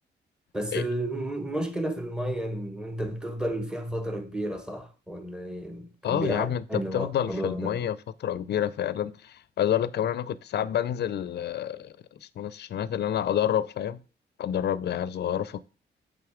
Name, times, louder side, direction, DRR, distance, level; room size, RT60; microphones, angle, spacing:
voice 1, 0.5-7.8, right 1 dB, 5° right, 0.9 m, -32 dB
voice 2, 6.0-14.0 14.4-15.6, left 10 dB, 65° left, 0.5 m, -29 dB
8.1 x 3.8 x 4.9 m
wide cardioid pair, 125°, 19 cm